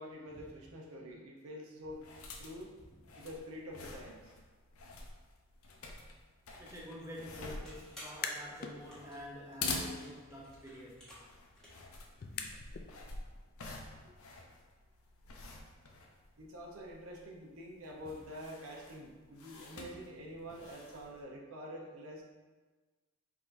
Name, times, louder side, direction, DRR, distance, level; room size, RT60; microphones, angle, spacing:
voice 1, 0.0-2.0 2.4-2.7 3.2-4.3 14.0-14.1 16.4-22.2, equal, 75° right, -1 dB, 0.8 m, -47 dB
sound 1, 1.9-21.2, left 3 dB, 80° left, 0.6 m, -47 dB
voice 2, 6.6-11.1, left 1 dB, 15° right, -4 dB, 0.6 m, -48 dB
sound 2, 7.3-11.9, equal, 5° left, 1.3 m, -56 dB
sound 3, 8.1-8.8 9.2-12.9, left 6 dB, 45° left, 0.3 m, -46 dB
4.8 x 3.8 x 2.6 m, 1.3 s
head